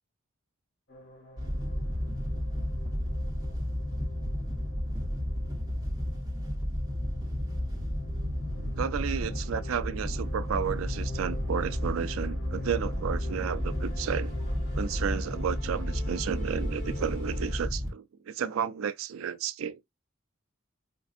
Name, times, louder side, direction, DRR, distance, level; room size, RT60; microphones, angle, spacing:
sound 1, 0.9-17.6, left 1 dB, 60° left, 1.5 m, -47 dB
Wind / Boat Water vehicle, 1.4-17.9, equal, 20° right, 1.3 m, -32 dB
voice 1, 8.8-14.3 14.8-19.8, right 8 dB, 90° right, 0.4 m, -32 dB
5.1 x 2.4 x 2.5 m
head